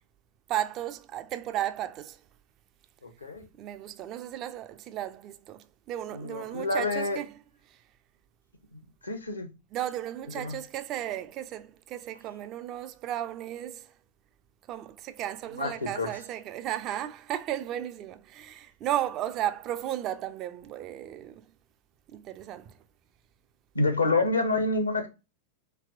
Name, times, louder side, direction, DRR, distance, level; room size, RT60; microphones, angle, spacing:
voice 1, 0.5-2.2 3.6-7.4 7.7-7.8 9.7-13.9 14.7-21.5 22.1-22.8, right 12 dB, 35° right, 0.3 m, -34 dB
voice 2, 3.0-3.4 6.1-7.2 9.0-9.5 10.4-10.6 15.6-16.1 23.7-25.1, left 3 dB, 80° left, 0.8 m, -28 dB
3.3 x 2.8 x 2.4 m
figure-of-eight pair, 90°, 0 cm